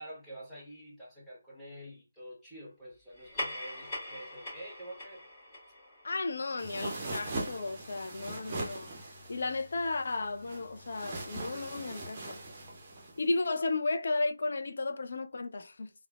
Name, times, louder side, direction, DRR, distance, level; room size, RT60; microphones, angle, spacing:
voice 1, 0.0-5.2, right 1 dB, ahead, 1.0 m, -47 dB
sound 1, 3.1-8.0, left 1 dB, 20° left, 1.1 m, -43 dB
voice 2, 6.0-8.9 9.3-12.4 13.1-15.9, left 3 dB, 50° left, 0.3 m, -34 dB
sound 2, 6.6-13.2, right 2 dB, 25° right, 0.6 m, -41 dB
3.0 x 2.0 x 2.2 m
figure-of-eight pair, 155°, 0 cm